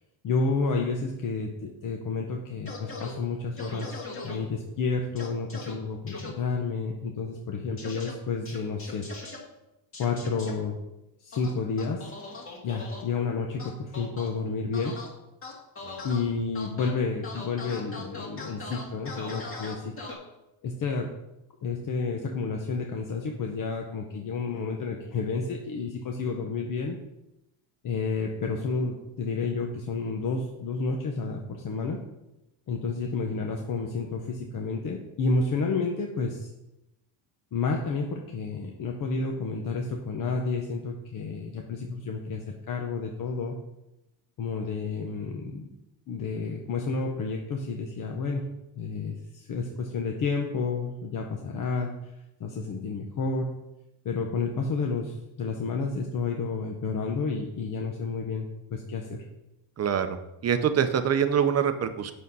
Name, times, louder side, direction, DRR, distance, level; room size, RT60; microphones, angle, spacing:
voice 1, 0.2-3.9 4.2-9.1 10.0-10.8 11.2-12.1 12.6-15.0 16.0-19.9 20.6-21.1 21.6-27.0 27.8-32.0 32.7-36.5 37.5-43.5 44.4-45.7 46.1-48.5 48.8-51.9 52.4-53.5 54.0-59.2, left 4 dB, 45° left, 1 dB, 0.9 m, -30 dB
sound 1, 2.7-3.1 3.6-4.4 5.2-5.7 6.1-6.3 7.8-8.1 8.5-9.4 9.9-10.5 11.3-13.0 13.6-14.3 14.7-15.1 15.4-16.2 16.5-16.9 17.2-20.1, left 3 dB, 25° left, 2.0 m, -40 dB
voice 2, 59.8-60.2 60.4-62.1, right 8 dB, 35° right, 10 dB, 0.6 m, -25 dB
8.2 x 6.5 x 5.4 m, 0.91 s
cardioid pair, 160°, 47 cm